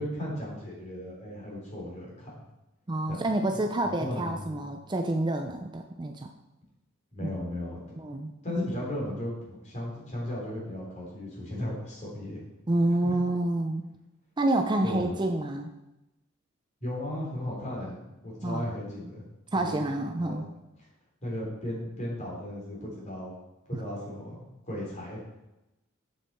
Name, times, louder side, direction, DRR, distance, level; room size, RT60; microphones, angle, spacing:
voice 1, 0.0-2.3 3.1-3.2 3.8-4.6 7.1-7.8 8.4-12.4 13.0-13.2 14.8-15.2 16.8-19.3 19.5-19.8 20.2-20.3 21.2-23.4 23.7-25.2, left 1 dB, 35° left, -4 dB, 3.4 m, -35 dB
voice 2, 2.9-6.3 7.2-7.3 8.0-8.6 12.7-13.9 14.4-15.7 18.4-18.7 19.5-20.4 23.7-23.8, right 1 dB, 20° right, 4 dB, 0.5 m, -28 dB
7.8 x 7.1 x 4.4 m, 0.95 s
head